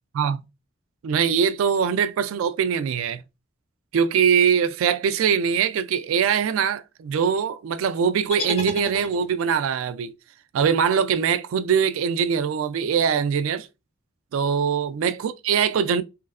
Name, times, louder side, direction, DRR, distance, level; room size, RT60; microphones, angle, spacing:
voice 1, 1.0-3.2 3.9-10.1 10.5-13.7 14.3-16.0, right 7 dB, 85° right, 0.3 m, -22 dB
sound 1, 8.3-9.6, left 3 dB, 30° left, 0.5 m, -32 dB
3.1 x 2.0 x 2.3 m
head